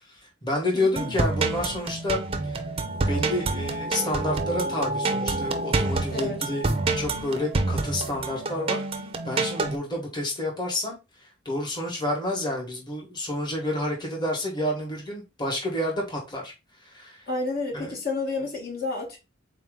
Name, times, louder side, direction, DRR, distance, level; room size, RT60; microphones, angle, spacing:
voice 1, 0.1-2.6 2.9-6.6 6.9-8.8 9.2-11.0 11.4-16.5 16.8-17.2 17.7-17.9, left 1 dB, 20° left, 1.2 m, -29 dB
voice 2, 0.7-1.1 6.1-6.4 17.3-19.2, left 3 dB, 50° left, 1.2 m, -30 dB
sound 1, 0.9-9.8, right 3 dB, 30° right, 0.5 m, -27 dB
3.9 x 2.9 x 3.6 m
head